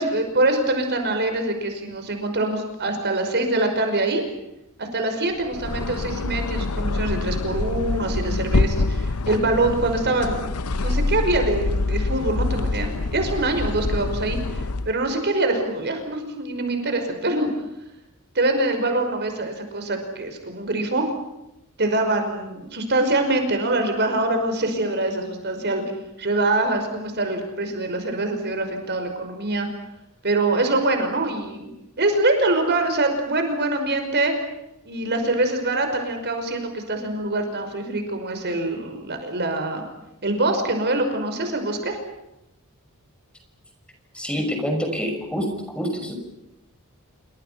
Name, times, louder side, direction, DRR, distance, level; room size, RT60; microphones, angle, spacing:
voice 1, 0.0-4.2 4.8-10.6 10.8-14.4 14.8-17.5 18.4-21.1 21.8-25.8 26.2-29.7 30.2-31.7 32.0-34.3 34.9-39.8 40.2-42.0, right 2 dB, 50° right, 6 dB, 5.5 m, -24 dB
sound 1, 5.4-15.0, left 3 dB, 80° left, 0.9 m, -25 dB
voice 2, 44.1-45.5 45.7-46.2, equal, 5° left, 4 dB, 5.8 m, -26 dB
29.0 x 26.0 x 5.8 m, 0.87 s
head